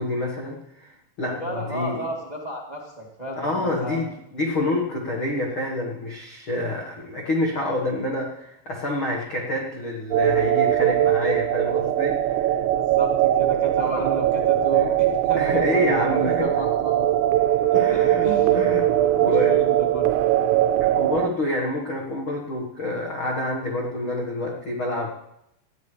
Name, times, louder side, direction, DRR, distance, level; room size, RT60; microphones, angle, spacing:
voice 1, 0.0-2.0 3.3-12.6 14.7-14.9 15.3-16.5 17.7-18.3 18.5-19.5 20.8-25.1, left 1 dB, 80° left, -1 dB, 1.1 m, -28 dB
voice 2, 1.4-4.1 12.7-17.1 17.9-18.6 19.2-20.1, right 1 dB, 60° right, -2 dB, 0.4 m, -33 dB
sound 1, 10.1-21.3, right 12 dB, 80° right, 2.5 m, -21 dB
20.0 x 14.5 x 3.4 m, 0.83 s
omnidirectional pair, 5.3 m